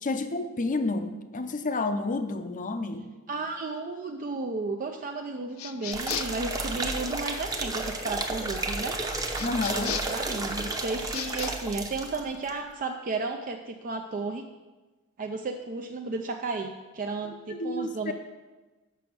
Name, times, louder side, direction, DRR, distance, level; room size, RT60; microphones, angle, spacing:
voice 1, 0.0-3.0 9.4-10.0 17.5-18.1, left 2 dB, 40° left, 9 dB, 0.6 m, -30 dB
voice 2, 3.3-9.0 10.1-14.4 15.2-18.1, right 3 dB, 40° right, 4 dB, 0.4 m, -33 dB
sound 1, 5.6-6.5 9.3-10.2 11.0-11.5, left 10 dB, 80° left, 0.4 m, -36 dB
sound 2, 5.9-12.2 12.5-12.6, right 2 dB, 20° right, 0.8 m, -32 dB
6.9 x 6.0 x 6.0 m, 1.2 s
head